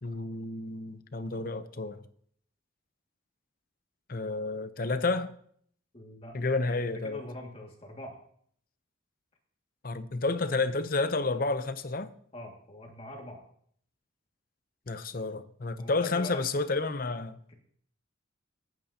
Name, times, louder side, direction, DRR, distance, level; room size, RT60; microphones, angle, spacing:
voice 1, 0.0-2.0 4.1-5.3 6.3-7.2 9.8-12.1 14.9-17.4, left 3 dB, 45° left, 0.7 m, -30 dB
voice 2, 5.9-6.4 7.0-8.2 12.3-13.4 15.8-16.4 17.5-17.6, left 1 dB, 30° left, 2.1 m, -43 dB
17.0 x 9.0 x 2.8 m
head